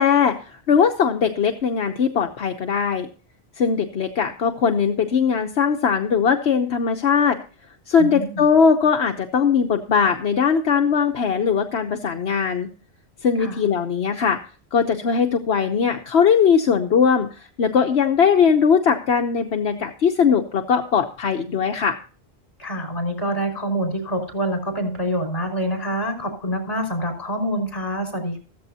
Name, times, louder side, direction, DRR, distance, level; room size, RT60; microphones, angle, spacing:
voice 1, 0.0-3.1 3.6-7.4 7.9-12.7 13.2-14.4 14.7-22.0, left 6 dB, 70° left, 4 dB, 1.2 m, -20 dB
voice 2, 8.0-8.4 13.4-13.6 22.6-28.4, equal, 35° left, 5 dB, 5.5 m, -26 dB
14.5 x 14.5 x 2.8 m, 0.38 s
omnidirectional pair, 1.1 m